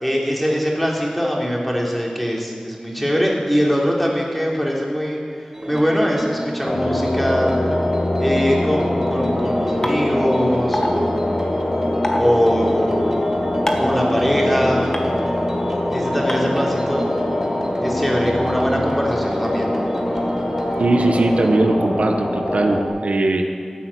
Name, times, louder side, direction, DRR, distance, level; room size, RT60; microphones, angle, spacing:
voice 1, 0.0-7.5 8.2-11.2 12.1-13.1 13.8-14.9 15.9-17.1 17.8-19.8, equal, 5° left, -2 dB, 3.4 m, -22 dB
sound 1, 5.5-21.6, equal, 25° right, 2.2 m, -30 dB
sound 2, 6.7-22.9, left 1 dB, 55° left, 1.8 m, -23 dB
sound 3, 9.8-9.9 10.7-10.9 12.0-12.2 13.7-13.9 14.9-15.0 16.3-16.4, left 1 dB, 30° left, 1.8 m, -22 dB
voice 2, 20.8-23.5, right 2 dB, 90° right, 4 dB, 1.2 m, -19 dB
15.0 x 8.9 x 8.5 m, 2.2 s
wide cardioid pair, 55°, 2 cm